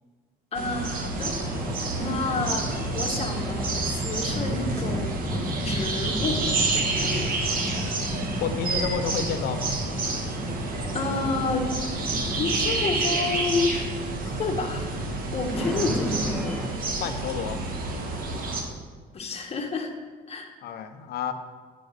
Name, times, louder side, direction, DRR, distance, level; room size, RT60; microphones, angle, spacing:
voice 1, 0.5-1.3 2.0-6.4 6.7-7.3 10.9-11.7 12.3-13.8 14.3-14.9 15.3-16.6 19.1-19.9 20.3-20.5, left 3 dB, 35° left, 2 dB, 1.4 m, -30 dB
sound 1, 0.5-18.6, right 3 dB, 60° right, 1.6 m, -29 dB
sound 2, 1.2-16.7, left 1 dB, 5° left, 1.2 m, -33 dB
voice 2, 8.4-9.7 17.0-17.6 20.6-21.3, left 7 dB, 70° left, 8 dB, 0.8 m, -30 dB
9.1 x 5.3 x 6.6 m, 1.5 s
cardioid pair, 110°, 17 cm